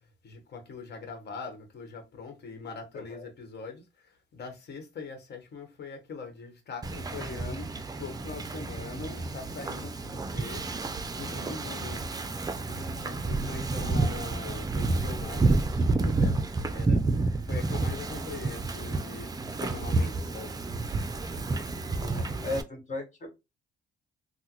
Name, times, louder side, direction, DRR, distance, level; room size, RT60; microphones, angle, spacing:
voice 1, 0.2-12.0 12.6-20.6 21.9-22.6, left 4 dB, 55° left, 1.2 m, -43 dB
voice 2, 2.9-3.3 11.4-11.5 22.0-23.3, left 2 dB, 35° left, 1.5 m, -36 dB
Wind / Ocean, 6.8-22.6, right 3 dB, 20° right, 0.5 m, -30 dB
3.6 x 2.1 x 2.9 m
cardioid pair, 90°, 20 cm